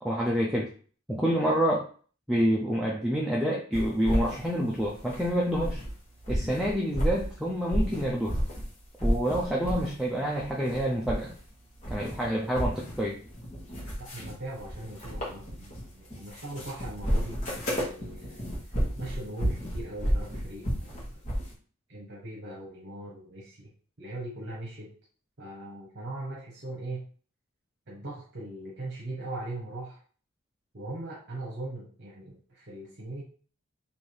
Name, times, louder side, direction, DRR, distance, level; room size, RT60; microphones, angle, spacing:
voice 1, 0.0-0.7 1.1-1.9 2.3-5.8 6.3-8.4 9.0-11.3 11.9-13.2, equal, ahead, -4 dB, 0.5 m, -27 dB
sound 1, 3.7-5.9 6.2-8.7 9.0-10.0 10.3-11.5 11.7-21.5, equal, 35° left, 1.4 m, -32 dB
voice 2, 13.7-17.4 17.7-21.2 21.9-23.7 24.0-24.9 25.4-27.1 27.9-30.0 30.7-33.2, right 2 dB, 50° right, -4 dB, 1.0 m, -40 dB
3.3 x 2.8 x 4.4 m, 0.42 s
head